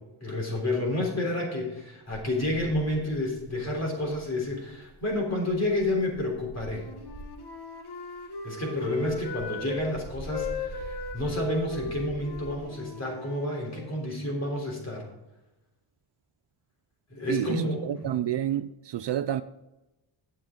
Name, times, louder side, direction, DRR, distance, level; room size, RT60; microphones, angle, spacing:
voice 1, 0.2-6.9 8.4-15.0 17.1-18.2, left 1 dB, 30° left, 3.5 m, -30 dB
sound 1, 2.1-7.6 8.0-12.6, right 1 dB, 25° right, 2.6 m, -45 dB
Wind instrument woodwind instrument, 6.6-9.9 10.2-14.0, left 3 dB, 50° left, 1.3 m, -37 dB
voice 2, 17.3-19.4, right 11 dB, 60° right, 0.5 m, -29 dB
11.5 x 8.2 x 3.8 m
wide cardioid pair, 175°, 49 cm